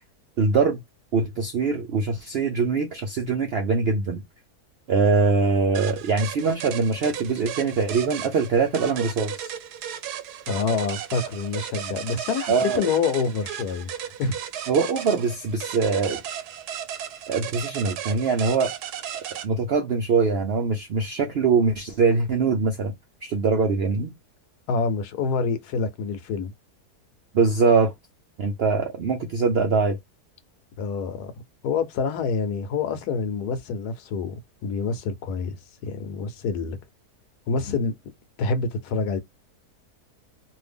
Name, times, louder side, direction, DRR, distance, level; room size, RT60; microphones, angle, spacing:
voice 1, 0.4-0.8 1.1-4.2 4.9-9.5 12.5-12.8 14.7-16.2 17.3-18.7 19.4-22.9 23.2-24.1 27.3-27.9 28.4-30.0, right 4 dB, 70° right, 0.5 m, -23 dB
sound 1, 5.7-19.5, right 10 dB, 90° right, 1.2 m, -35 dB
voice 2, 10.5-14.4 24.7-26.5 30.8-31.3 31.6-35.6 35.8-36.8 37.5-37.9 38.4-39.2, left 5 dB, 85° left, 1.2 m, -27 dB
2.7 x 2.5 x 3.3 m
omnidirectional pair, 1.6 m